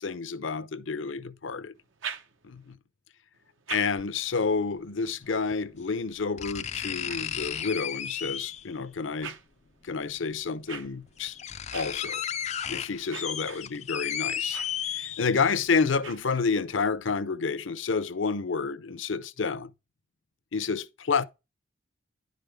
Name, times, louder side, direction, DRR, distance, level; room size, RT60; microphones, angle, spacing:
voice 1, 0.0-1.7 2.4-2.8 3.7-9.3 9.8-11.4 11.7-12.2 12.7-14.6 14.9-19.7 20.5-21.2, left 5 dB, 70° left, 0.7 m, -29 dB
sound 1, 1.7-2.7 3.3-8.0 8.5-16.8, right 7 dB, 75° right, 1.0 m, -46 dB
sound 2, 4.0-4.1 5.5-5.6 6.4-8.8 10.1-10.2 10.8-10.9 11.2-15.6 16.0-16.1, left 9 dB, 35° left, 0.4 m, -34 dB
11.0 x 5.2 x 3.5 m
head